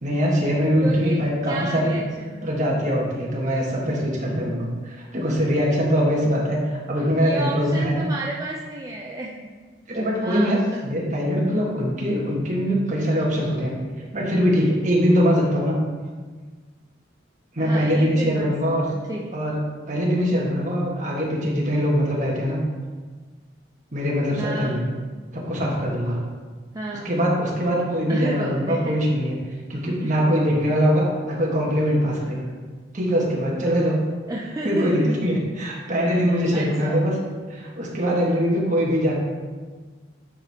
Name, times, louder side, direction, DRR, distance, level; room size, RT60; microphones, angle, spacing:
voice 1, 0.0-1.9 2.4-8.1 9.9-13.7 14.1-15.8 17.5-18.8 19.3-19.6 19.9-22.6 23.9-24.8 25.3-26.2 27.0-29.4 29.7-32.5 32.9-34.0 34.6-37.1 37.5-39.1, equal, 40° right, -4 dB, 1.5 m, -22 dB
voice 2, 0.8-2.5 7.2-9.3 10.1-10.6 14.0-14.1 17.6-18.5 18.9-19.4 24.4-24.8 26.7-27.1 28.1-28.9 30.0-30.1 34.3-35.1 36.1-37.0, right 1 dB, 20° right, -2 dB, 0.4 m, -32 dB
9.0 x 4.5 x 3.5 m, 1.4 s
head